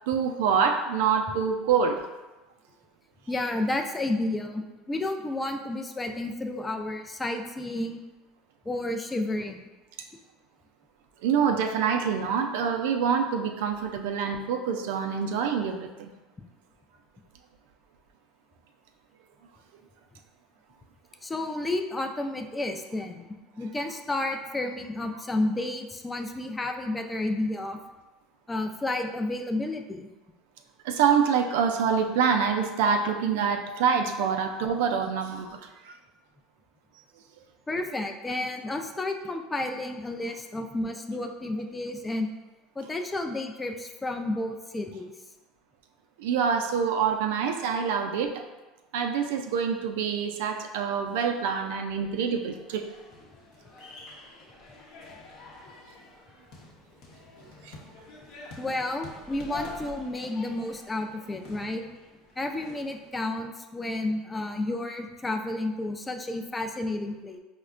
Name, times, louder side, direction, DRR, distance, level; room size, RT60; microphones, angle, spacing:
voice 1, 0.1-2.0 11.2-16.1 30.8-36.0 46.2-48.4 48.9-52.9 57.6-57.7, right 6 dB, 75° right, 5 dB, 0.3 m, -26 dB
voice 2, 3.3-8.0 8.7-9.6 21.2-23.3 23.6-27.8 28.5-30.1 37.7-42.3 42.8-45.1 58.6-61.8 62.4-67.4, left 2 dB, 15° left, 5 dB, 0.4 m, -31 dB
sound 1, 52.4-63.1, left 3 dB, 65° left, 0.8 m, -46 dB
4.8 x 2.1 x 2.4 m, 1.1 s
hypercardioid pair, 85°, 0 cm